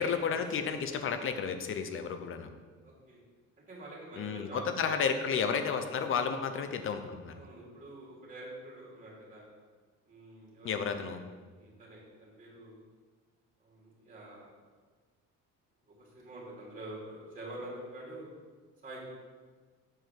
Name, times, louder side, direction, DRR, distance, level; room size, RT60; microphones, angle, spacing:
voice 1, 0.0-2.5 4.1-7.4 10.6-11.2, left 6 dB, 40° left, 8 dB, 0.7 m, -32 dB
voice 2, 2.8-3.2 3.6-5.3 7.3-9.5 10.1-11.2 11.5-12.8 13.6-14.5 15.9-18.3 18.8-19.1, right 1 dB, 25° right, -5 dB, 2.8 m, -47 dB
7.7 x 4.9 x 5.9 m, 1.4 s
cardioid pair, 155°, 31 cm